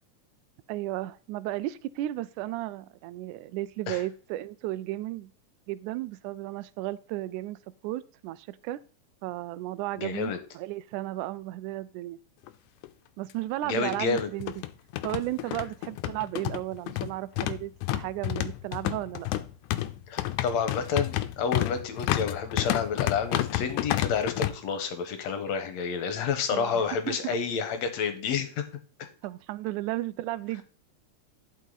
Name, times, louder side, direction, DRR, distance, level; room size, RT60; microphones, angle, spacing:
voice 1, 0.7-5.3 5.7-8.8 9.2-12.2 13.2-14.5 15.0-19.3 26.5-27.4 29.2-30.6, right 16 dB, 80° right, 15 dB, 2.0 m, -34 dB
voice 2, 10.0-10.4 13.6-14.3 20.1-28.6, left 6 dB, 65° left, 9 dB, 2.2 m, -29 dB
sound 1, 12.5-12.6 12.8-12.9 13.8-24.5, left 15 dB, 80° left, 2.1 m, -30 dB
11.0 x 5.5 x 3.9 m, 0.38 s
omnidirectional pair, 3.6 m